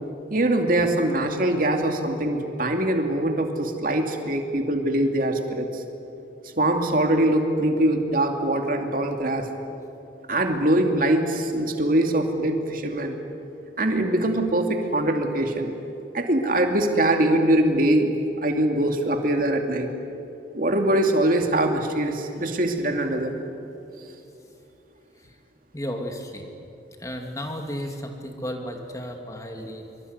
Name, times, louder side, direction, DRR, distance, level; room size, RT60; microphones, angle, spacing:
voice 1, 0.3-5.8 6.6-9.5 10.3-13.1 13.8-15.7 16.1-19.9 20.5-23.4, right 1 dB, 45° right, 3 dB, 2.6 m, -23 dB
voice 2, 25.7-26.5 27.0-30.0, equal, 15° left, 3 dB, 2.4 m, -33 dB
24.5 x 24.0 x 9.7 m, 2.8 s
head